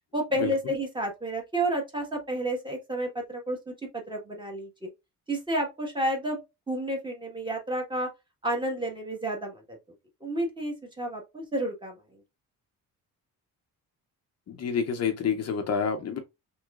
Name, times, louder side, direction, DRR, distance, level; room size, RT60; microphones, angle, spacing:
voice 1, 0.1-4.9 5.3-6.4 6.7-8.1 8.4-9.8 10.2-12.0, right 1 dB, 15° right, 1.4 m, -31 dB
voice 2, 14.5-16.2, left 6 dB, 45° left, 0.7 m, -28 dB
6.0 x 3.1 x 2.4 m
cardioid pair, 165°, 36 cm